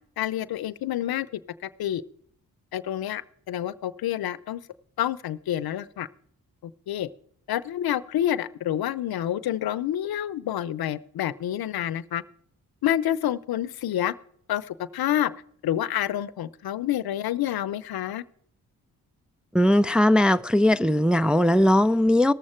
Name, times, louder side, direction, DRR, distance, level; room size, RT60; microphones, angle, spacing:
voice 1, 0.2-1.3 1.8-2.0 2.7-3.2 3.5-4.6 5.0-6.1 6.6-7.1 7.5-12.2 12.8-14.1 14.5-15.3 15.6-18.2, left 11 dB, 75° left, 0.7 m, -28 dB
voice 2, 19.5-22.3, left 1 dB, 5° right, 0.4 m, -19 dB
18.0 x 7.5 x 4.4 m
cardioid pair, 60°, 37 cm